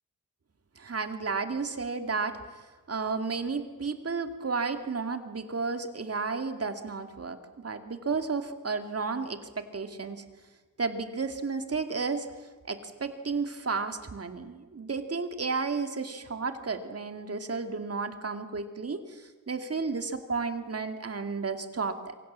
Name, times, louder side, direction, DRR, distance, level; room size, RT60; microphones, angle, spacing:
voice 1, 0.8-10.2 10.8-12.3 12.7-22.2, right 4 dB, 50° right, 7 dB, 2.4 m, -32 dB
27.0 x 24.5 x 7.5 m, 1.3 s
wide cardioid pair, 105°, 32 cm